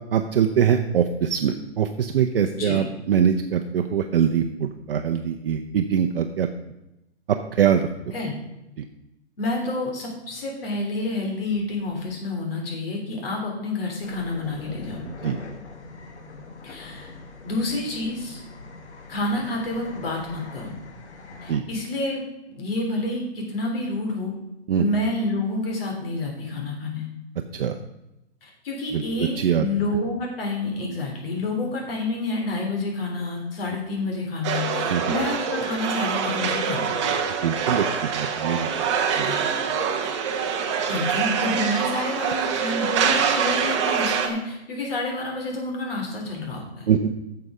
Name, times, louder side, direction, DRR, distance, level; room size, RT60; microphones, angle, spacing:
voice 1, 0.1-6.5 7.3-7.9 15.0-15.4 21.5-21.6 24.7-24.9 27.5-27.8 28.9-29.7 34.9-35.1 37.4-38.9 39.2-39.3 46.9-47.1, right 8 dB, 55° right, 6 dB, 0.7 m, -23 dB
voice 2, 9.4-15.0 16.6-17.1 17.4-18.4 19.1-20.7 21.4-22.2 22.5-24.3 24.8-27.1 28.4-37.1 39.2-39.4 40.0-40.1 40.9-47.1, left 2 dB, 55° left, 0 dB, 3.2 m, -29 dB
sound 1, 14.0-21.6, left 3 dB, 80° left, 1.7 m, -41 dB
sound 2, 34.4-44.3, right 6 dB, 25° right, 0.9 m, -25 dB
9.5 x 6.9 x 4.9 m, 0.91 s
hypercardioid pair, 165°, 34 cm